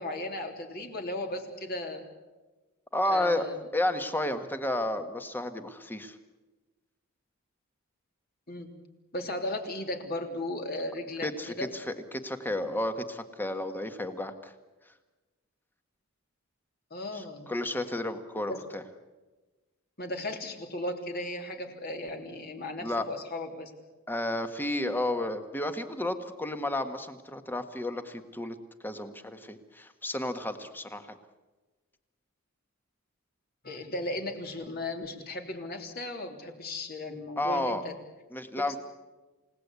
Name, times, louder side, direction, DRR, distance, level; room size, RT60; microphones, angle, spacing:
voice 1, 0.0-2.0 3.0-3.6 8.5-8.7 9.1-11.7 16.9-17.5 18.5-18.6 20.0-23.7 33.6-37.9 38.6-38.8, left 1 dB, 45° left, 4 dB, 3.2 m, -36 dB
voice 2, 2.9-3.5 3.7-6.2 11.2-14.5 17.1-18.8 22.8-23.0 24.1-28.6 28.8-31.1 37.4-37.8 38.3-38.8, left 1 dB, 10° left, 8 dB, 1.6 m, -32 dB
28.5 x 18.0 x 8.3 m, 1.2 s
head